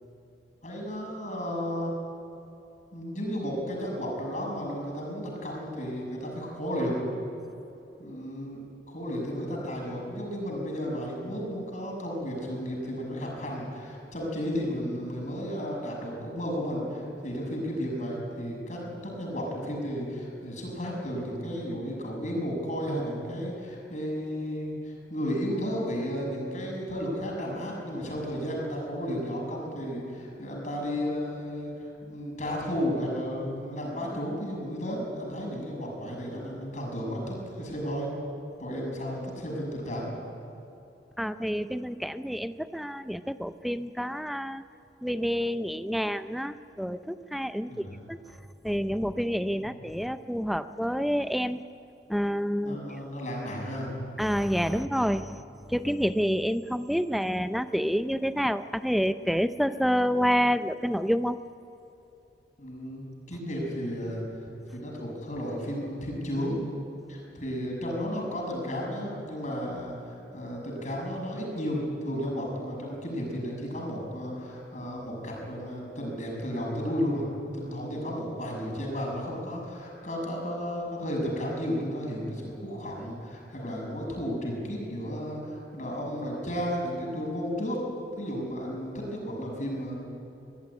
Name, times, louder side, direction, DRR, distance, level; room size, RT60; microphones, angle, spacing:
voice 1, 0.6-1.9 2.9-7.1 8.0-8.6 8.9-38.1 38.6-40.1 47.6-48.0 49.6-49.8 52.6-53.9 62.6-64.2 64.7-66.6 67.1-77.3 77.5-87.8 88.2-89.9, equal, 45° left, -1 dB, 6.2 m, -33 dB
voice 2, 41.2-44.6 45.0-48.2 48.6-51.6 52.1-52.8 54.2-61.4, equal, ahead, 11 dB, 0.5 m, -28 dB
22.0 x 14.5 x 9.9 m, 2.9 s
head